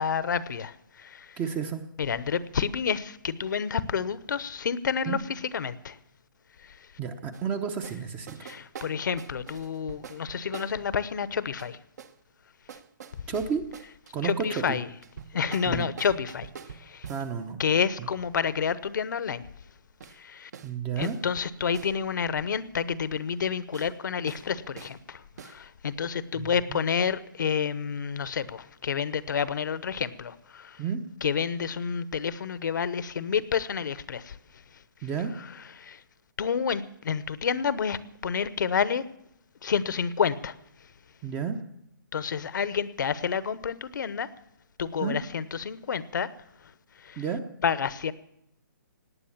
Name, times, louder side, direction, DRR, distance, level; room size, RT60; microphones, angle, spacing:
voice 1, 0.0-1.4 2.0-6.0 6.6-6.9 8.4-11.8 14.2-14.9 15.3-17.1 17.6-19.4 20.1-20.5 21.0-30.8 31.2-34.4 35.8-36.0 36.4-39.0 39.6-40.6 42.1-44.3 44.8-46.3 47.0-47.2 47.6-48.1, left 7 dB, 65° left, 16 dB, 0.9 m, -29 dB
voice 2, 1.4-1.8 5.1-5.2 7.0-8.4 13.3-13.6 14.1-14.8 15.7-15.9 17.1-17.6 20.6-21.2 26.4-26.8 30.8-31.0 35.0-35.3 41.2-41.6 45.0-45.2 47.2-47.4, right 7 dB, 15° right, 9 dB, 0.7 m, -31 dB
sound 1, 7.3-7.5 7.8-8.0 8.3-10.9 11.6-12.2 12.7-14.1 15.0-17.3 20.0-20.2 20.5-20.7 21.0-21.2 21.7-21.9 23.7-23.9 24.3-24.5 24.8-25.0 25.4-25.6, right 7 dB, 50° right, 1.1 m, -45 dB
18.0 x 9.6 x 7.3 m, 0.79 s
hypercardioid pair, 160°, 11 cm